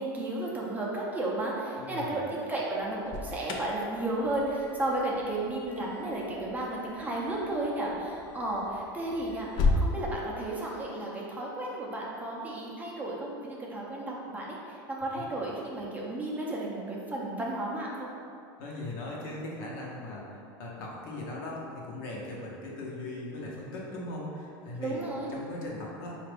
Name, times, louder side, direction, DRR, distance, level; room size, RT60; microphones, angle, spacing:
voice 1, 0.0-18.1 24.8-25.3, right 1 dB, 15° right, -4 dB, 0.5 m, -33 dB
voice 2, 1.8-2.2 18.6-26.2, left 1 dB, 65° left, -3 dB, 0.9 m, -39 dB
Alarm, 2.8-9.9, left 3 dB, 40° left, 0.4 m, -35 dB
3.8 x 2.4 x 3.4 m, 2.5 s
supercardioid pair, 130°, 12 cm